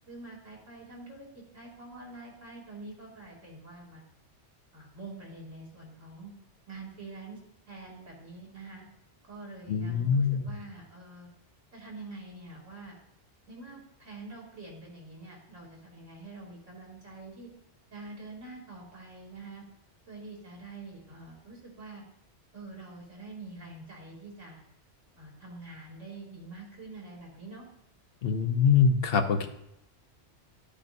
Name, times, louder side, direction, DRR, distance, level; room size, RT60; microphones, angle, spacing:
voice 1, 0.1-4.0 4.7-6.3 6.7-7.4 7.7-8.8 9.3-11.3 11.7-13.0 13.5-17.5 17.9-19.6 20.1-22.0 22.5-24.6 25.2-27.6, right 2 dB, 90° right, -4 dB, 3.2 m, -46 dB
voice 2, 9.7-10.4 28.2-29.5, left 6 dB, 55° left, 6 dB, 1.0 m, -24 dB
12.0 x 8.7 x 2.6 m, 0.81 s
omnidirectional pair, 1.2 m